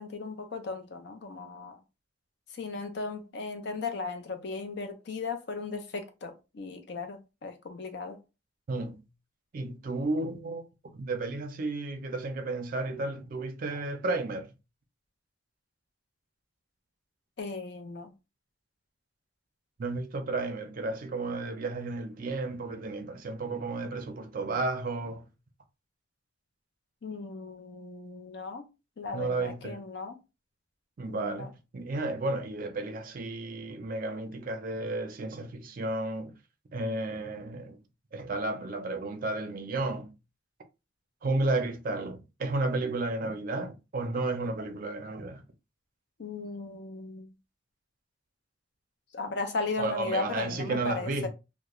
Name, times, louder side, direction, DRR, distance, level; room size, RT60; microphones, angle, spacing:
voice 1, 0.0-1.8 2.5-8.2 17.4-18.1 27.0-28.6 29.0-30.2 31.1-31.5 46.2-47.3 49.1-51.3, left 3 dB, 60° left, 0.5 m, -36 dB
voice 2, 8.7-9.0 9.5-14.5 19.8-25.3 29.1-29.8 31.0-36.4 36.7-37.8 38.1-40.1 41.2-45.4 49.8-51.3, right 2 dB, 45° right, 0.4 m, -33 dB
2.3 x 2.1 x 2.9 m
head